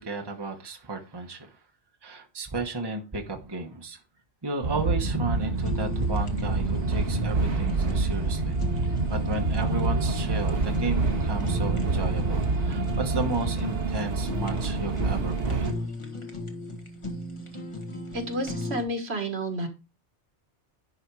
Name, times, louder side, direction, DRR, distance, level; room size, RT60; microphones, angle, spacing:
voice 1, 0.0-1.5 2.0-4.0 4.4-15.7, right 2 dB, 20° right, 1.2 m, -33 dB
sound 1, 4.6-15.7, right 3 dB, 80° right, 1.7 m, -27 dB
Fire, 5.5-18.8, left 2 dB, 25° left, 1.4 m, -37 dB
voice 2, 18.1-19.7, right 1 dB, 65° right, 1.9 m, -30 dB
11.0 x 4.3 x 4.7 m
omnidirectional pair, 1.2 m